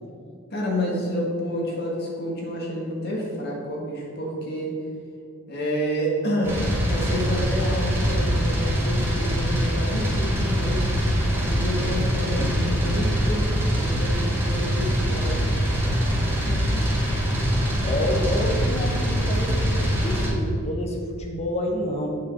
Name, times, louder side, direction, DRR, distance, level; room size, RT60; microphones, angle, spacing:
voice 1, 0.5-4.7 5.5-10.8 11.5-15.5, equal, 45° left, -2 dB, 1.7 m, -29 dB
sound 1, 6.4-20.3, equal, 10° right, 1.9 m, -23 dB
voice 2, 16.2-22.1, left 1 dB, 30° left, 1 dB, 1.0 m, -30 dB
7.2 x 4.6 x 6.1 m, 2.4 s
head